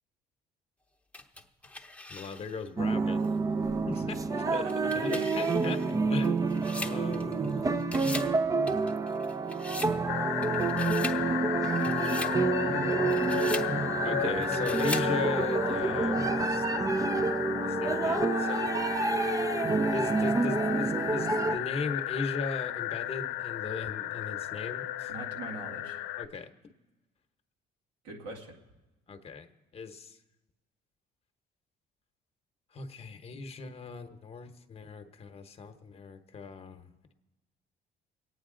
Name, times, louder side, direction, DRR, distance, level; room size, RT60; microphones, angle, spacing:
sound 1, 1.1-2.7 3.2-3.3 4.5-7.5 7.8-8.4 8.7-10.0 10.4-11.2 11.6-12.4 12.9-13.7 14.4-15.1, left 2 dB, 10° left, 0.8 m, -41 dB
voice 1, 2.1-3.2 3.9-4.7 5.0-7.6 14.0-16.6 17.6-18.7 19.9-25.1 26.2-26.5 29.1-29.5 29.7-30.2 32.7-37.1, left 4 dB, 35° left, 7 dB, 0.9 m, -38 dB
sound 2, 2.8-21.6, right 3 dB, 20° right, 0.4 m, -28 dB
voice 2, 4.5-5.1 12.5-13.6 25.1-26.0 28.0-28.6, right 2 dB, 90° right, -1 dB, 2.3 m, -42 dB
sound 3, 10.1-26.2, left 13 dB, 85° left, 0.6 m, -34 dB
23.0 x 9.2 x 3.8 m, 1.1 s
cardioid pair, 110°, 17 cm